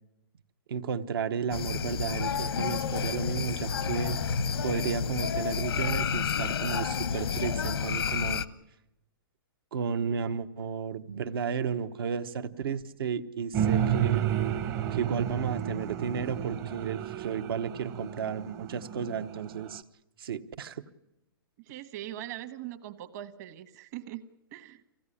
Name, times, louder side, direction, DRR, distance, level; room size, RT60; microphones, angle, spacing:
voice 1, 0.7-4.2 4.6-8.4 9.7-14.3 14.9-19.8 20.2-20.8, right 6 dB, 75° right, 9 dB, 1.3 m, -33 dB
sound 1, 1.5-8.5, left 6 dB, 90° left, 1.0 m, -30 dB
sound 2, 13.5-19.8, right 10 dB, 25° right, 0.8 m, -31 dB
voice 2, 21.6-24.2 24.5-24.8, right 13 dB, 45° right, 10 dB, 1.4 m, -41 dB
24.0 x 16.5 x 10.0 m, 0.89 s
hypercardioid pair, 155°, 12 cm